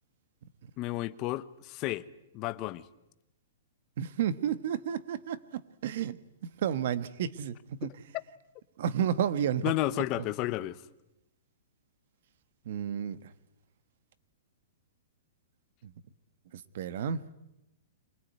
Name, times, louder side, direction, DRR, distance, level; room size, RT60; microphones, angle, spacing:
voice 1, 0.8-2.1 2.3-2.8 7.8-8.0 9.6-10.8, left 16 dB, 30° left, 0.9 m, -32 dB
voice 2, 4.0-6.2 6.4-7.9 8.8-9.7 12.6-13.3 15.8-15.9 16.5-17.2, right 9 dB, 55° right, 1.3 m, -31 dB
24.5 x 20.0 x 9.5 m
hypercardioid pair, 160°, 0 cm